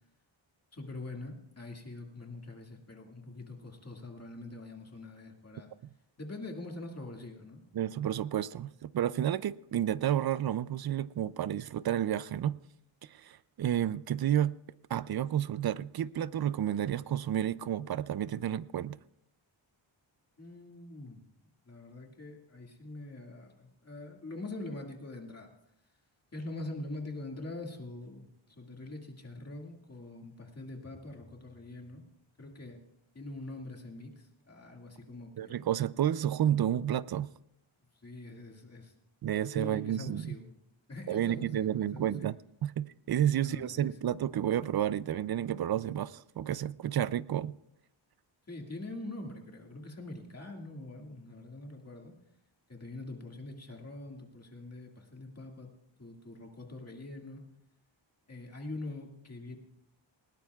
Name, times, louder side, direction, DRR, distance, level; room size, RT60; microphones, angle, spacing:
voice 1, 0.7-5.7 6.2-7.6 20.4-21.2 21.7-25.5 26.3-32.0 32.4-32.8 33.1-35.6 37.9-38.9 39.5-40.5 40.9-42.3 43.4-44.0 48.5-52.1 52.7-55.7 56.0-57.4 58.3-59.6, left 2 dB, 30° left, 2.1 m, -44 dB
voice 2, 7.7-12.6 13.1-14.6 14.9-19.0 35.4-37.3 39.2-40.3 41.1-47.5, right 10 dB, 55° right, 0.5 m, -31 dB
20.0 x 18.5 x 2.4 m
wide cardioid pair, 125°, 48 cm